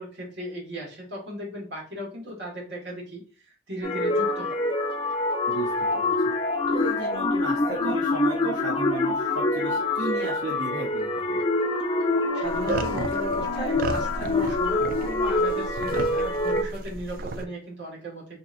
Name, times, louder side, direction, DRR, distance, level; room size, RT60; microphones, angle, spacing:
voice 1, 0.0-4.6 12.3-18.4, equal, 70° right, -3 dB, 1.5 m, -37 dB
sound 1, 3.8-16.6, left 2 dB, 30° left, 0.5 m, -25 dB
voice 2, 5.5-6.1 6.7-11.4, right 2 dB, 85° right, -3 dB, 0.7 m, -34 dB
big pigs, 12.4-17.4, right 3 dB, 50° right, 0.3 m, -34 dB
3.8 x 2.8 x 2.4 m, 0.39 s
head